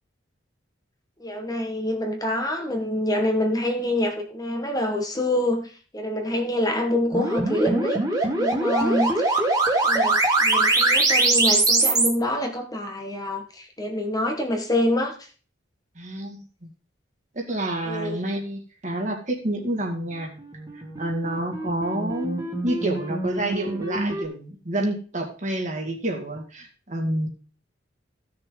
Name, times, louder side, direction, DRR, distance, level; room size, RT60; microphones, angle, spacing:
voice 1, 1.2-8.0 8.2-9.4 9.8-15.1 17.8-18.2, left 1 dB, 20° left, 3 dB, 1.6 m, -26 dB
sound 1, 7.1-12.1 20.3-24.2, right 2 dB, 20° right, 2.3 m, -23 dB
voice 2, 16.0-16.7 17.3-20.3 21.0-27.3, right 1 dB, 40° right, 2 dB, 2.3 m, -29 dB
15.5 x 6.6 x 3.9 m, 0.39 s
head